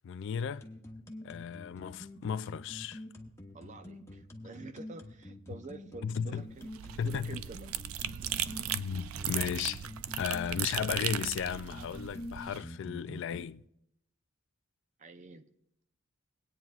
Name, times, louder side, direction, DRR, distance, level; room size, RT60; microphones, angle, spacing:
voice 1, 0.0-0.6 1.2-3.0 6.0-6.4 7.0-7.4 8.7-9.9 10.2-13.6, left 7 dB, 60° left, 0.3 m, -35 dB
sound 1, 0.6-13.4, left 1 dB, 15° left, 1.0 m, -46 dB
voice 2, 3.5-6.7 7.0-7.7 15.0-15.5, right 3 dB, 35° right, 0.6 m, -47 dB
sound 2, 6.5-12.6, right 11 dB, 85° right, 0.4 m, -37 dB
22.0 x 9.1 x 2.4 m
head